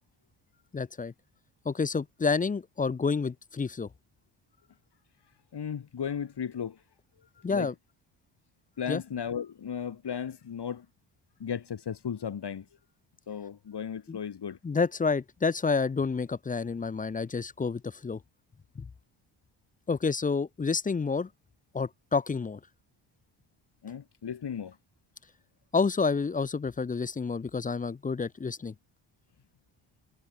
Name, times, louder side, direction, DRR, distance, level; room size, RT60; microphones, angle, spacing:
voice 1, 0.7-1.1 1.7-3.9 7.4-7.7 8.9-9.0 14.1-14.2 14.6-18.2 18.8-18.9 19.9-21.3 21.7-22.6 25.7-28.7, left 4 dB, 15° left, 0.5 m, -29 dB
voice 2, 5.5-6.8 7.2-7.7 8.8-10.9 11.4-12.7 13.3-14.6 23.8-24.8, left 7 dB, 55° left, 4.4 m, -35 dB
supercardioid pair, 65°, 49 cm